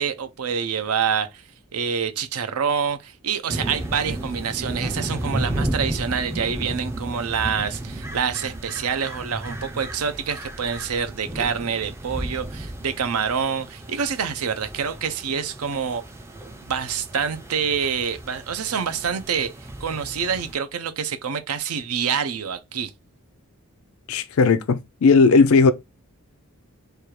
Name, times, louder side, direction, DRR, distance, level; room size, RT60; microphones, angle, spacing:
voice 1, 0.0-1.4 1.7-16.0 16.6-19.5 19.8-22.9, right 6 dB, 75° right, 0.6 m, -26 dB
sound 1, 3.5-20.5, right 1 dB, 10° right, 0.4 m, -33 dB
voice 2, 24.1-25.7, left 4 dB, 65° left, 0.4 m, -16 dB
3.3 x 2.3 x 4.4 m
head